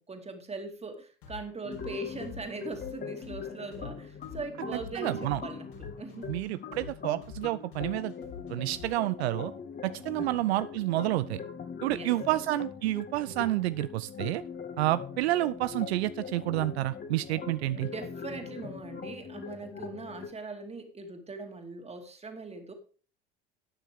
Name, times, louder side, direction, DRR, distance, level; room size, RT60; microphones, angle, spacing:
voice 1, 0.0-6.3 10.2-10.6 11.9-12.4 17.7-22.7, right 3 dB, 20° right, 4 dB, 2.7 m, -41 dB
sound 1, 1.2-9.1, left 7 dB, 65° left, 4.5 m, -46 dB
sound 2, 1.6-20.3, left 6 dB, 30° left, 2.0 m, -41 dB
voice 2, 4.9-5.4 6.3-8.1 8.5-9.5 9.8-11.4 11.8-14.4 14.8-17.9, right 17 dB, 70° right, 16 dB, 0.5 m, -29 dB
13.0 x 9.1 x 3.6 m, 0.40 s
hypercardioid pair, 75°, 34 cm